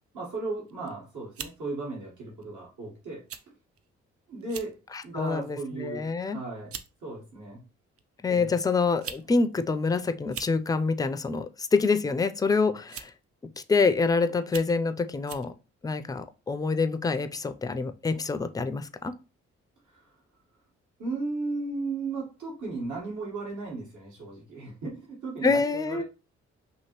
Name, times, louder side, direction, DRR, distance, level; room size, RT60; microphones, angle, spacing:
voice 1, 0.1-3.2 4.3-4.8 5.0-6.7 7.0-7.6 8.3-8.5 19.9-20.1 21.0-26.0, right 3 dB, 70° right, -4 dB, 1.4 m, -35 dB
sound 1, 0.7-0.9 1.3-1.6 2.4-2.6 3.3-3.4 3.8-3.9 4.4-4.7 5.2-5.5 6.3-6.4 6.7-6.9 8.0-8.1 8.8-9.3 9.5-9.6 10.2-10.6 11.8-12.1 12.9-13.2 13.8-13.9 14.4-14.8 15.3-15.5, right 7 dB, 45° right, 0.5 m, -40 dB
voice 2, 4.9-6.4 8.2-13.1 13.6-15.5 15.8-19.1 25.4-26.0, left 4 dB, 10° left, 11 dB, 0.4 m, -26 dB
2.9 x 2.7 x 2.9 m, 0.31 s
supercardioid pair, 45°, 32 cm